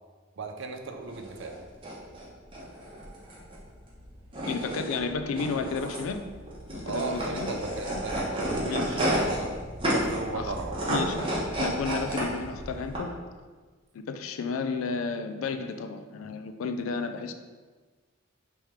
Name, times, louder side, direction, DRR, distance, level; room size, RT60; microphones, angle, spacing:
voice 1, 0.4-1.6 6.8-9.5 9.8-10.8, right 4 dB, 65° right, 4 dB, 0.5 m, -36 dB
sound 1, 1.0-13.0, equal, 25° right, 1.0 m, -31 dB
voice 2, 4.4-6.3 6.7-7.5 7.9-8.0 8.6-9.0 10.3-10.5 10.9-11.2 11.5-13.2 14.1-17.3, left 4 dB, 90° left, 9 dB, 0.4 m, -32 dB
3.5 x 3.2 x 4.3 m, 1.4 s
head